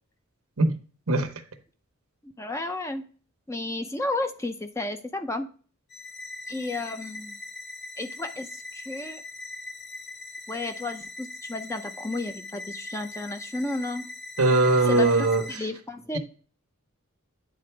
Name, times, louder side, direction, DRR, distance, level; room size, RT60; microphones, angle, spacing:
voice 1, 2.2-3.0 3.5-5.5 6.5-7.4 8.0-9.2 10.5-14.1 14.9-16.2, left 2 dB, 15° left, 0.6 m, -32 dB
sound 1, 5.9-15.6, left 2 dB, 50° left, 1.5 m, -41 dB
voice 2, 14.4-15.6, right 2 dB, 85° right, 1.0 m, -21 dB
9.4 x 3.8 x 3.3 m
head